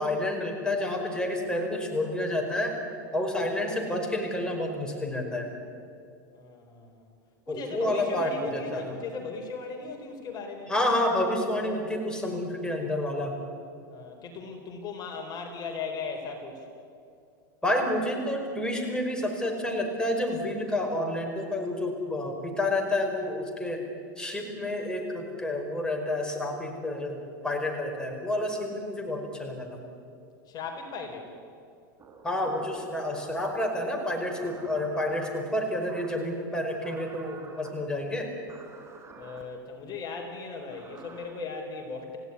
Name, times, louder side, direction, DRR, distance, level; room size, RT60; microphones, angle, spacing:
voice 1, 0.0-2.8 3.1-5.5 7.5-8.9 10.7-13.4 17.6-23.8 24.2-29.8 32.2-38.3, left 1 dB, 5° left, 2 dB, 5.1 m, -29 dB
voice 2, 6.3-7.1 7.5-10.7 13.9-16.7 30.5-31.3 39.2-42.2, left 4 dB, 40° left, 3 dB, 4.1 m, -38 dB
sound 1, 32.0-33.7 34.4-35.3 35.9-36.3 36.8-37.7 38.5-39.4 40.5-41.3, right 4 dB, 25° right, 4.7 m, -48 dB
29.5 x 16.0 x 9.8 m, 2.5 s
hypercardioid pair, 110°, 11 cm